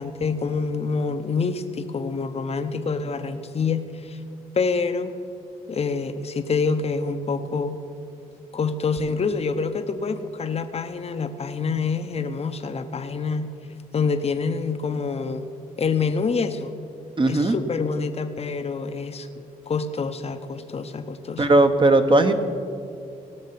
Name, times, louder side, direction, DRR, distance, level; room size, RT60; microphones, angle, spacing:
voice 1, 0.0-4.2 4.5-5.1 5.7-7.8 8.5-13.5 13.9-15.5 15.8-16.7 17.3-21.5, left 4 dB, 40° left, 9 dB, 0.8 m, -26 dB
voice 2, 17.2-17.6 21.4-22.3, right 2 dB, 35° right, 8 dB, 1.1 m, -17 dB
17.5 x 6.4 x 5.9 m, 2.5 s
supercardioid pair, 60°, 15 cm